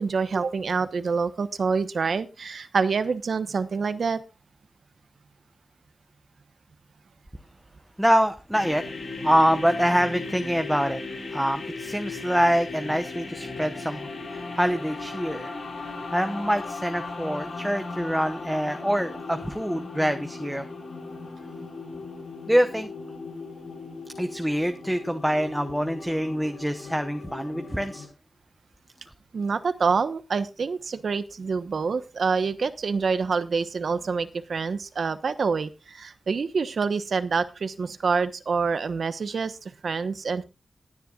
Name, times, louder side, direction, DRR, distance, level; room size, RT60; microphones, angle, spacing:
voice 1, 0.0-4.2 29.3-40.4, right 5 dB, 75° right, 12 dB, 1.0 m, -26 dB
voice 2, 8.0-8.8 9.2-11.0 11.3-15.5 16.1-20.6 22.5-22.9 24.2-28.1, equal, 5° right, 7 dB, 0.9 m, -25 dB
sound 1, 8.5-28.1, left 3 dB, 85° left, 4.6 m, -37 dB
21.0 x 10.0 x 2.4 m, 0.27 s
wide cardioid pair, 95°, 0 cm